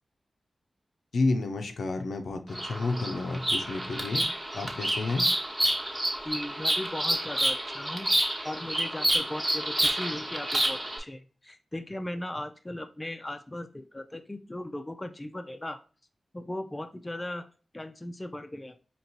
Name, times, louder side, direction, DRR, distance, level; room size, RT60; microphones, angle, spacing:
voice 1, 1.1-4.2 4.5-5.3, left 3 dB, 90° left, 5 dB, 0.6 m, -30 dB
Bird vocalization bird call bird song, 2.5-11.0, right 1 dB, 20° right, 1.0 m, -29 dB
voice 2, 6.2-8.1 8.4-15.8 16.3-17.5 17.7-18.8, left 1 dB, 20° left, 7 dB, 0.4 m, -37 dB
4.5 x 2.9 x 2.7 m, 0.35 s
wide cardioid pair, 90°, 0 cm